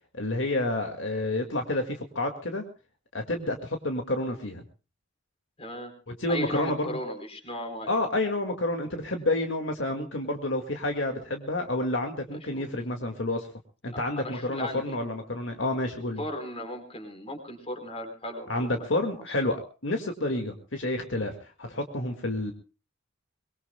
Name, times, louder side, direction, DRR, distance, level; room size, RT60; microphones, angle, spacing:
voice 1, 0.1-2.6 3.1-4.6 6.1-7.0 7.9-13.5 13.8-16.2 18.5-21.3 21.6-22.5, left 2 dB, 70° left, 4 dB, 2.1 m, -29 dB
voice 2, 5.6-5.9 6.3-8.0 12.3-12.6 13.9-15.0 16.2-19.3, left 1 dB, 30° left, 6 dB, 4.3 m, -37 dB
23.5 x 22.0 x 2.3 m, 0.34 s
head